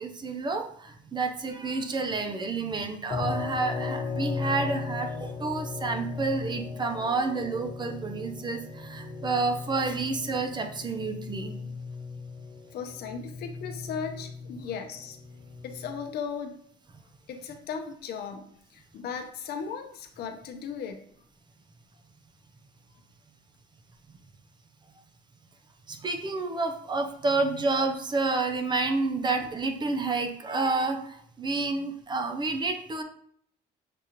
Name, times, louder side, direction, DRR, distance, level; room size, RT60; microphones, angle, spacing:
voice 1, 0.0-11.6 25.9-33.0, right 3 dB, 25° right, 6 dB, 0.6 m, -29 dB
sound 1, 3.1-16.1, left 4 dB, 25° left, 1.1 m, -37 dB
voice 2, 12.7-15.2 15.6-16.6 17.3-21.0, left 6 dB, 70° left, 5 dB, 0.7 m, -37 dB
6.8 x 2.4 x 2.9 m, 0.65 s
cardioid pair, 110°, 17 cm